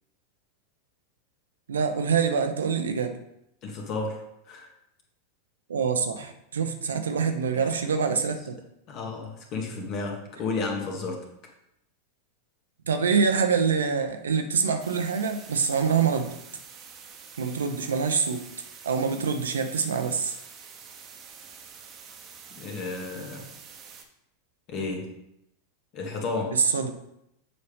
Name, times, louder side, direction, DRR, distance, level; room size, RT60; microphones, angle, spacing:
voice 1, 1.7-3.2 5.7-8.6 12.9-16.3 17.4-18.4 18.8-20.4 26.5-26.9, right 6 dB, 80° right, 7 dB, 0.7 m, -25 dB
voice 2, 3.6-4.7 7.5-7.7 8.9-11.3 22.5-23.5 24.7-25.2 25.9-26.6, left 3 dB, 45° left, 1 dB, 1.7 m, -32 dB
sound 1, 14.8-24.0, right 6 dB, 40° right, 1.0 m, -47 dB
7.0 x 5.2 x 3.5 m, 0.80 s
hypercardioid pair, 95°, 0 cm